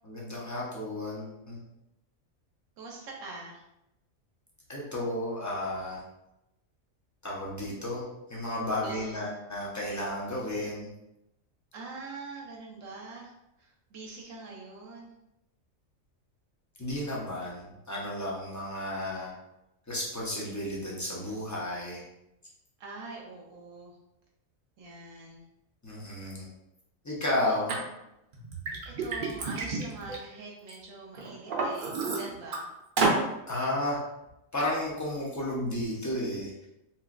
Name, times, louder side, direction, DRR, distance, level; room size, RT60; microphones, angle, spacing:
voice 1, 0.0-1.6 4.7-6.0 7.2-8.0 8.3-10.9 16.8-19.3 19.9-22.0 25.8-26.5 27.0-27.8 33.5-34.0 34.5-36.7, left 1 dB, 30° left, -5 dB, 0.3 m, -33 dB
voice 2, 2.8-3.6 8.8-9.2 11.7-13.3 13.6-15.1 22.8-24.0 24.8-25.4 28.8-32.7, right 3 dB, 75° right, -1 dB, 1.0 m, -43 dB
Liquid, 27.7-27.8 28.3-30.7 31.2-32.6 33.0-33.2, right 3 dB, 55° right, 0.7 m, -29 dB
3.0 x 2.9 x 2.4 m, 0.88 s
omnidirectional pair, 1.4 m